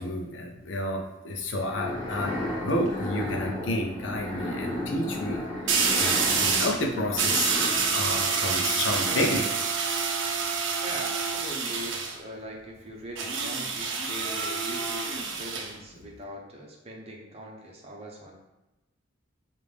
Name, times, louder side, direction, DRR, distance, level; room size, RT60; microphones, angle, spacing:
voice 1, 0.0-5.4 6.0-7.6 7.9-9.4, left 1 dB, 75° left, 1 dB, 0.5 m, -30 dB
sound 1, 1.6-9.6, left 1 dB, 25° left, 1.3 m, -35 dB
sound 2, 2.5-2.9 5.7-6.8 7.2-12.2 13.2-15.7, right 5 dB, 75° right, 0.6 m, -27 dB
voice 2, 8.8-9.2 10.8-18.3, right 1 dB, 30° right, -1 dB, 0.7 m, -41 dB
5.0 x 2.5 x 3.3 m, 1.0 s
head